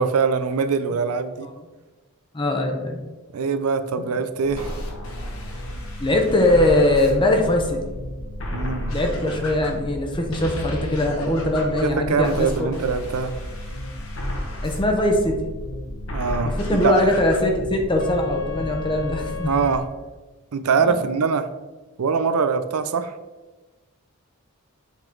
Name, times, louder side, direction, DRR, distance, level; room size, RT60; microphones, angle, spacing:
voice 1, 0.0-1.5 3.3-4.7 8.5-9.0 11.8-13.3 16.1-16.6 16.8-16.9 19.5-19.9 20.5-21.5 22.0-23.1, right 5 dB, 85° right, 11 dB, 0.5 m, -23 dB
voice 2, 2.3-3.0 6.0-7.9 8.9-12.7 14.6-15.3 16.4-19.5 20.8-21.0, left 1 dB, 20° left, 2 dB, 0.7 m, -21 dB
sound 1, 4.4-19.8, left 1 dB, 70° left, 1.3 m, -32 dB
7.2 x 3.8 x 4.6 m, 1.2 s
head